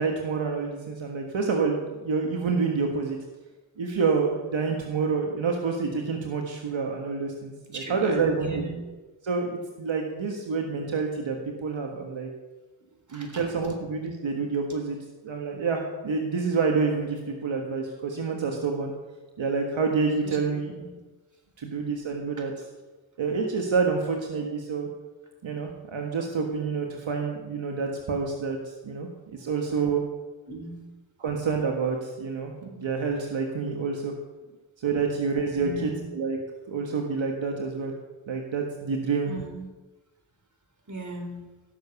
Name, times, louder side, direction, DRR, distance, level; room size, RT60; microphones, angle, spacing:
voice 1, 0.0-3.2 3.8-8.6 9.2-12.3 13.1-15.0 15.2-18.9 19.4-20.7 21.6-22.5 23.2-24.9 25.4-28.6 28.8-30.0 31.2-34.1 34.8-36.4 36.7-37.9 38.3-39.4, right 4 dB, 80° right, 2 dB, 1.6 m, -28 dB
voice 2, 7.7-8.7 13.1-13.4 20.2-20.4 20.7-20.9 30.5-30.8 35.5-36.0 39.2-39.7 40.9-41.4, right 1 dB, 40° right, 3 dB, 3.8 m, -37 dB
16.0 x 7.1 x 7.0 m, 1.2 s
cardioid pair, 45°, 45 cm